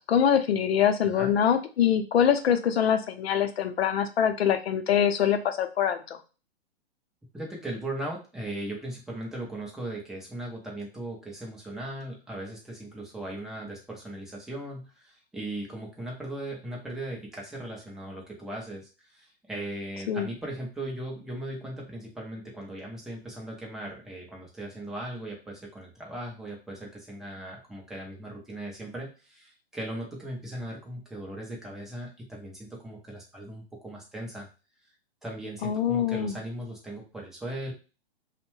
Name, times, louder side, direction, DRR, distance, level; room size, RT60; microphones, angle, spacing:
voice 1, 0.1-6.0 20.1-20.3 35.6-36.4, left 8 dB, 75° left, 8 dB, 0.6 m, -24 dB
voice 2, 7.3-34.5 35.2-37.7, right 1 dB, ahead, -2 dB, 0.3 m, -38 dB
2.6 x 2.1 x 3.0 m, 0.32 s
hypercardioid pair, 125°, 31 cm